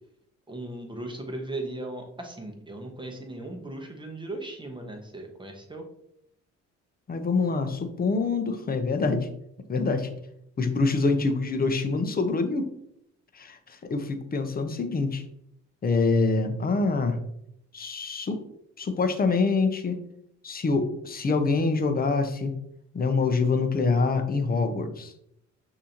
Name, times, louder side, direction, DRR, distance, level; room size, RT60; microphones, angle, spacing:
voice 1, 0.5-5.8, right 2 dB, 15° right, 2 dB, 1.0 m, -37 dB
voice 2, 7.1-9.3 9.7-10.1 10.6-12.7 13.3-13.6 13.9-15.2 15.8-17.2 17.7-18.4 18.8-19.9 20.4-22.6 22.9-25.1, left 4 dB, 30° left, 8 dB, 0.7 m, -25 dB
6.1 x 2.8 x 2.9 m, 0.74 s
cardioid pair, 90°, 30 cm